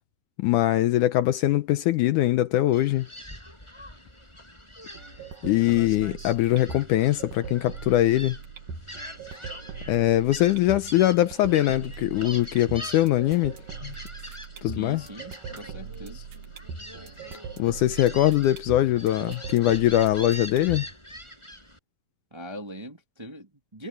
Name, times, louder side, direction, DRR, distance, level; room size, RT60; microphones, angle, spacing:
voice 1, 0.4-3.1 5.4-8.4 9.9-13.6 13.8-13.9 14.6-15.0 17.6-20.9, left 14 dB, 80° left, 2.0 m, -22 dB
Gull seagull, 2.7-21.8, equal, 5° left, 8.0 m, -43 dB
sound 1, 4.9-20.9, right 6 dB, 70° right, 3.4 m, -41 dB
voice 2, 14.6-16.3 22.3-23.9, equal, 10° right, 1.2 m, -41 dB
omnidirectional pair, 4.0 m